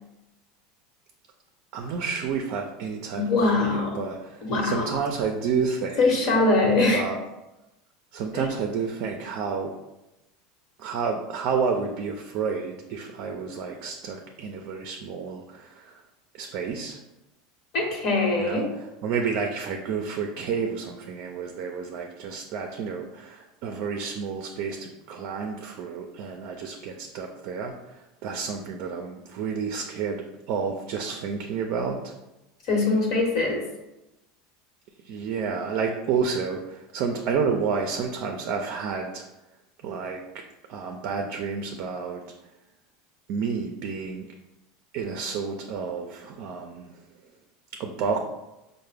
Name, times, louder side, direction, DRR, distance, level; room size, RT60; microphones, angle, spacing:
voice 1, 1.7-3.2 3.6-6.2 6.8-7.2 8.1-9.7 10.8-16.0 16.3-17.0 18.4-32.1 35.0-39.2 39.8-40.2 40.7-42.2 43.3-44.3 44.9-46.9 47.8-48.3, right 5 dB, 60° right, 3 dB, 0.4 m, -30 dB
voice 2, 3.1-4.0 4.4-4.9 6.0-7.0 8.3-8.5 17.7-18.7 32.7-33.6, left 3 dB, 55° left, 0 dB, 1.0 m, -22 dB
4.4 x 2.1 x 3.3 m, 0.97 s
supercardioid pair, 115°, 0 cm